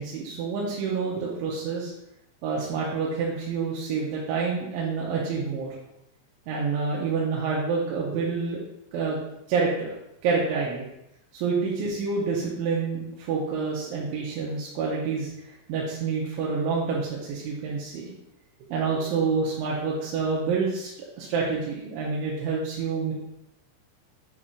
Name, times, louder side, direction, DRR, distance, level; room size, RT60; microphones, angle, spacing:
voice 1, 0.0-1.9 2.4-5.8 6.5-8.6 8.9-9.2 9.5-9.9 10.2-10.8 11.3-15.3 15.7-18.1 18.7-20.9 21.2-23.1, right 5 dB, 85° right, -4 dB, 3.2 m, -27 dB
8.3 x 5.1 x 2.4 m, 0.84 s
omnidirectional pair, 5.3 m